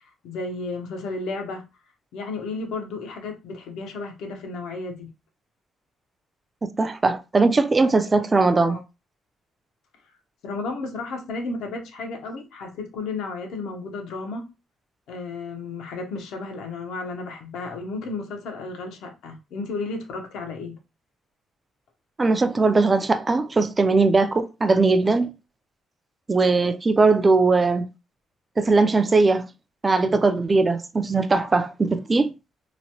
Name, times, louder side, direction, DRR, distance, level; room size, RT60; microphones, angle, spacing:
voice 1, 0.2-1.6 2.1-5.1 8.6-8.8 10.4-14.5 15.1-20.8, left 3 dB, 85° left, 0.7 m, -33 dB
voice 2, 6.8-8.8 22.2-25.3 26.3-27.9 28.6-29.5 29.8-32.3, right 3 dB, 30° right, 0.4 m, -20 dB
3.0 x 2.2 x 2.8 m
cardioid pair, 90°, 0 cm